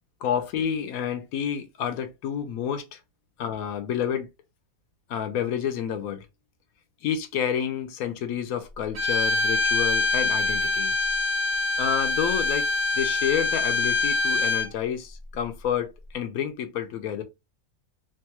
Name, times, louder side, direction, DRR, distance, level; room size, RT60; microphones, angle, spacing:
voice 1, 0.2-3.0 3.4-4.3 5.1-6.3 7.0-10.9 11.8-12.7 12.9-17.2, left 8 dB, 85° left, 1.1 m, -29 dB
Bowed string instrument, 8.9-14.7, left 3 dB, 45° right, 0.6 m, -24 dB
3.0 x 2.3 x 2.8 m
omnidirectional pair, 1.5 m